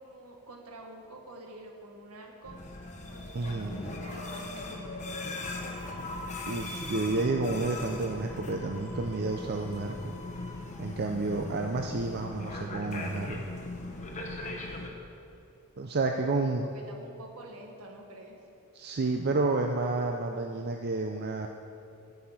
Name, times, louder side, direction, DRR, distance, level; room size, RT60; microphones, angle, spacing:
voice 1, 0.0-2.6 3.1-5.5 16.1-18.4, right 1 dB, 70° right, 1 dB, 1.5 m, -48 dB
sound 1, 2.4-14.9, left 2 dB, 35° left, 1.2 m, -39 dB
voice 2, 3.3-3.7 6.4-10.1 10.8-13.5 15.8-16.6 18.7-21.5, right 3 dB, 45° right, 3 dB, 0.5 m, -30 dB
15.0 x 5.6 x 5.9 m, 2.5 s
head